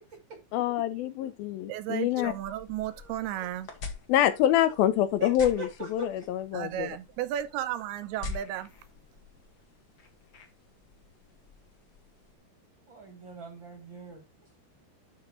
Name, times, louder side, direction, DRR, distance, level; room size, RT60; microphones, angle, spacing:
voice 1, 0.5-2.3 4.1-6.9, left 12 dB, 80° left, 2.3 m, -26 dB
voice 2, 1.7-3.7 6.5-8.7, right 12 dB, 80° right, 2.6 m, -34 dB
sound 1, 2.2-12.4, left 4 dB, 50° left, 1.4 m, -46 dB
voice 3, 2.9-3.5 5.2-6.1 12.9-14.2, right 3 dB, 45° right, 1.6 m, -41 dB
11.5 x 4.1 x 3.8 m
omnidirectional pair, 4.6 m